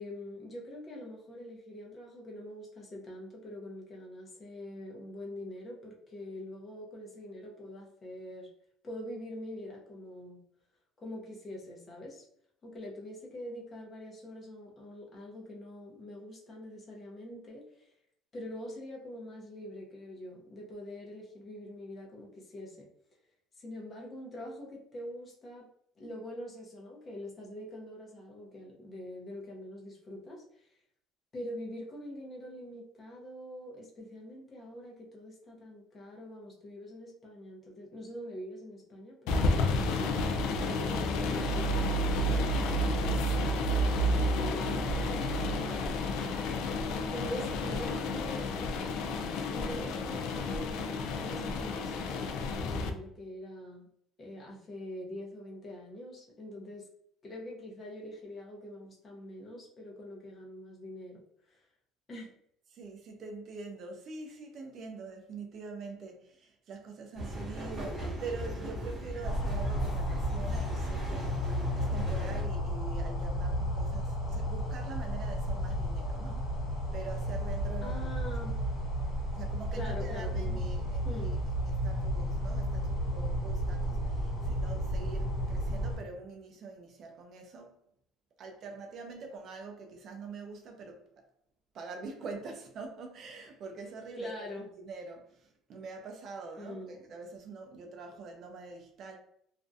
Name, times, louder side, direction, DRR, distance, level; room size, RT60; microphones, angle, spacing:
voice 1, 0.0-8.5 8.8-10.4 11.0-12.2 12.6-17.9 18.3-22.9 23.6-25.7 26.0-30.4 31.3-40.1 40.5-46.2 47.1-48.8 49.5-53.9 54.2-56.9 57.2-61.2 61.5-61.6 62.1-62.3 77.8-78.6 79.7-81.4 94.2-94.7 96.6-96.9, left 1 dB, 25° left, 0.6 m, -44 dB
sound 1, 39.3-52.9, left 1 dB, 70° left, 0.3 m, -30 dB
voice 2, 62.7-76.5 76.9-78.3 79.3-87.8 88.4-91.1 91.7-99.2, right 4 dB, 45° right, 0.4 m, -44 dB
sound 2, 67.1-72.4, equal, 25° right, 0.9 m, -37 dB
sound 3, 69.2-86.0, equal, 45° left, 1.1 m, -33 dB
2.4 x 2.1 x 2.6 m
cardioid pair, 150°, 0 cm